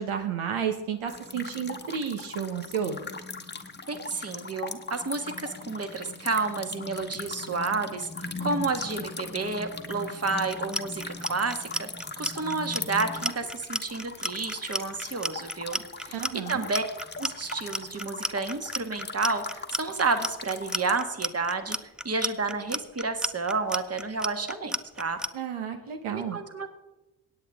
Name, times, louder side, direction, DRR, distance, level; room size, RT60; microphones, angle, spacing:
voice 1, 0.0-3.0 16.1-16.7 25.3-26.4, right 7 dB, 80° right, 6 dB, 1.2 m, -31 dB
sound 1, 1.1-21.0, left 3 dB, 20° left, 1.2 m, -39 dB
voice 2, 3.9-11.9 12.2-16.2 16.5-16.8 17.2-21.8 22.0-25.2 26.1-26.8, right 4 dB, 30° right, 8 dB, 1.5 m, -30 dB
Clock, 10.5-25.3, equal, ahead, 0.5 m, -32 dB
18.0 x 8.4 x 3.6 m, 0.99 s
supercardioid pair, 50°, 48 cm